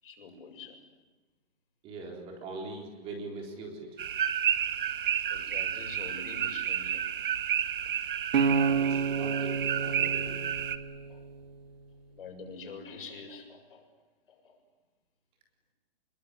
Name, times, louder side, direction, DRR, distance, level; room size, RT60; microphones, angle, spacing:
voice 1, 0.0-0.8 5.3-7.5 11.1-11.2 12.1-13.9 14.3-14.6, left 4 dB, 60° left, 3 dB, 7.5 m, -46 dB
voice 2, 1.8-3.9 8.4-10.4, right 3 dB, 20° right, 2 dB, 3.9 m, -42 dB
sound 1, 4.0-10.8, right 9 dB, 55° right, 1.8 m, -31 dB
sound 2, 8.3-11.5, right 5 dB, 75° right, 3.6 m, -29 dB
27.5 x 22.0 x 9.8 m, 1.2 s
hypercardioid pair, 170°, 31 cm